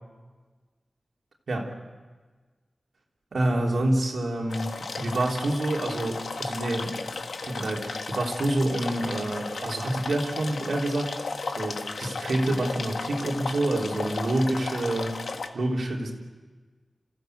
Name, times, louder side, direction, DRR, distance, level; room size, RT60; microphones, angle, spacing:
voice 1, 3.3-7.1 7.4-16.1, right 1 dB, 75° right, 0 dB, 3.2 m, -28 dB
sound 1, 4.5-15.5, left 4 dB, 85° left, 1.4 m, -35 dB
27.5 x 15.5 x 7.9 m, 1.4 s
wide cardioid pair, 100°, 0 cm